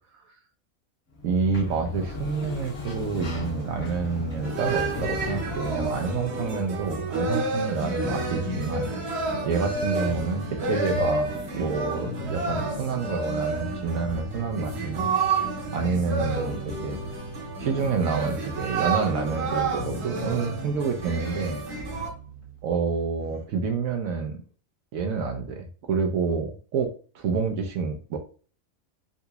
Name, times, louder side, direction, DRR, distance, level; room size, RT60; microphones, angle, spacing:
Sliding door, 1.1-6.5, left 2 dB, 55° left, 1.6 m, -36 dB
voice 1, 1.2-9.1 9.4-15.1 15.7-17.0 17.6-21.6 22.6-24.4 24.9-28.2, right 5 dB, 80° right, 5 dB, 1.0 m, -28 dB
sound 1, 4.4-22.1, right 3 dB, 55° right, 1.1 m, -30 dB
sound 2, 7.3-23.4, left 3 dB, 85° left, 1.2 m, -40 dB
3.9 x 2.8 x 2.2 m, 0.40 s
omnidirectional pair, 1.5 m